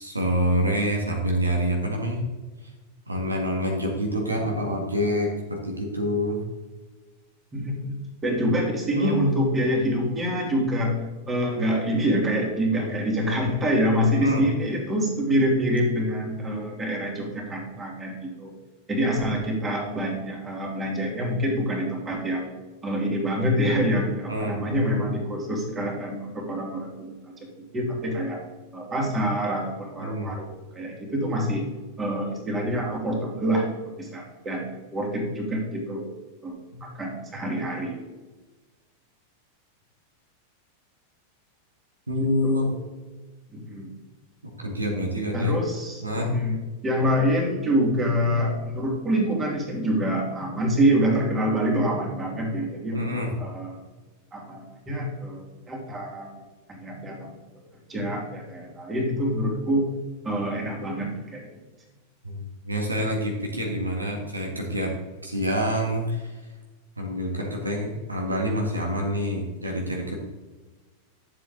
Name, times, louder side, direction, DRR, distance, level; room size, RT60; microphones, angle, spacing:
voice 1, 0.0-2.2 3.1-6.4 8.9-9.2 12.7-12.9 14.1-14.4 24.3-24.6 30.0-30.3 36.7-36.8 42.1-42.7 44.6-45.5 46.0-46.3 52.9-53.3 62.2-65.0 65.2-66.4 67.0-70.1, equal, 80° right, 0 dB, 1.8 m, -27 dB
voice 2, 7.5-11.0 11.3-18.5 18.9-22.5 22.8-27.3 27.7-28.4 28.7-31.6 32.0-36.1 36.4-38.0 42.2-42.8 43.5-44.0 45.3-53.8 54.3-56.3 56.7-57.3 57.9-59.9 60.2-61.5, equal, 20° right, 0 dB, 2.9 m, -26 dB
11.5 x 7.4 x 4.0 m, 1.2 s
figure-of-eight pair, 90°, 0 cm